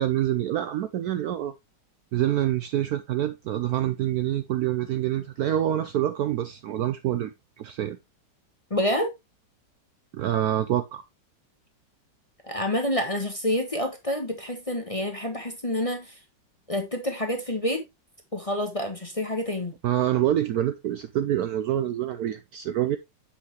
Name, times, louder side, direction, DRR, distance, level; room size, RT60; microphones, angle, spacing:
voice 1, 0.0-1.5 2.1-7.3 7.6-8.0 10.1-11.0 19.8-23.0, right 12 dB, 70° right, 0.9 m, -26 dB
voice 2, 8.7-9.1 12.4-16.2 16.7-17.8 18.3-19.7, left 1 dB, 25° left, 1.0 m, -28 dB
8.0 x 5.8 x 3.0 m
omnidirectional pair, 2.0 m